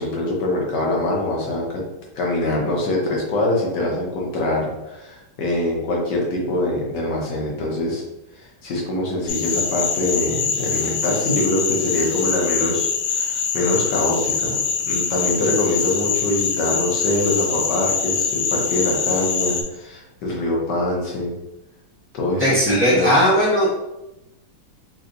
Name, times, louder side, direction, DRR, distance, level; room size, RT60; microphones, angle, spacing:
voice 1, 0.0-1.8 2.2-8.0 8.4-14.6 14.9-21.3 22.1-23.2, left 1 dB, 60° left, -2 dB, 1.3 m, -24 dB
sound 1, 9.3-19.6, left 6 dB, 85° left, 1.5 m, -24 dB
voice 2, 22.4-23.7, equal, 5° right, -10 dB, 1.0 m, -17 dB
3.5 x 3.1 x 2.5 m, 0.94 s
omnidirectional pair, 2.4 m